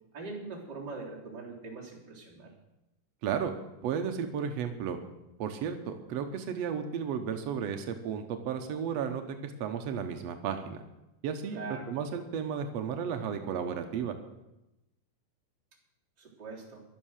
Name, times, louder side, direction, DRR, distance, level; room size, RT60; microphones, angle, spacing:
voice 1, 0.1-2.5 11.5-11.9 16.2-16.8, right 3 dB, 25° right, -4 dB, 3.8 m, -42 dB
voice 2, 3.2-3.5 3.8-5.0 5.4-10.8 11.2-11.6 11.9-14.1, right 7 dB, 90° right, 6 dB, 1.4 m, -33 dB
15.0 x 12.0 x 6.5 m, 0.93 s
omnidirectional pair, 4.5 m